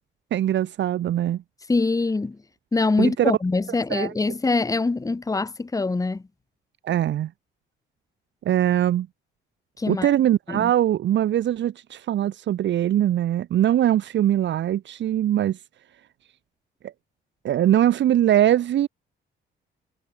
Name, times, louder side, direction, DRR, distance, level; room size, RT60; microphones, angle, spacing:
voice 1, 0.3-1.4 3.0-3.3 3.9-4.1 6.8-7.3 8.4-9.1 9.9-15.6 16.8-16.9 17.4-18.9, right 11 dB, 65° right, 1.2 m, -21 dB
voice 2, 1.7-2.4 2.7-6.2 9.8-10.1 10.5-10.7, left 3 dB, 15° left, 1.1 m, -24 dB
cardioid pair, 90°, 20 cm